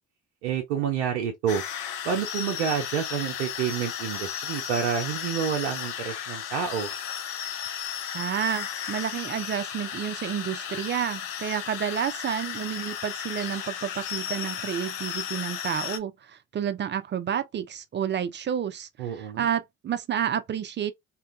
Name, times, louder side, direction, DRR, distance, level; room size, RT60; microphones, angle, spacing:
voice 1, 0.4-1.6 2.0-6.9 19.0-19.5, right 8 dB, 80° right, 0.5 m, -28 dB
sound 1, 1.5-16.0, left 9 dB, 75° left, 0.6 m, -34 dB
voice 2, 8.1-20.9, right 9 dB, 30° right, 0.4 m, -30 dB
2.7 x 2.2 x 2.4 m
hypercardioid pair, 50°, 37 cm